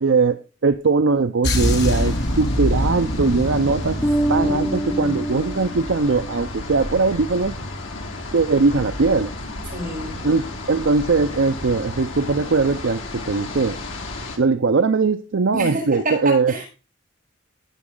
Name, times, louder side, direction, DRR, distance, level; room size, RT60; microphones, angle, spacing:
voice 1, 0.0-7.5 8.3-9.3 10.2-13.8 14.4-16.5, right 4 dB, 70° right, 10 dB, 0.6 m, -20 dB
sound 1, 1.4-6.0 6.3-6.5, equal, 60° left, 2.9 m, -25 dB
sound 2, 1.6-14.4, left 2 dB, 80° left, 2.6 m, -33 dB
Bass guitar, 4.0-6.5, right 1 dB, 5° left, 1.0 m, -25 dB
voice 2, 4.3-5.2 9.7-10.2 15.5-16.6, right 1 dB, 45° right, -6 dB, 7.3 m, -28 dB
18.0 x 6.1 x 3.8 m, 0.32 s
head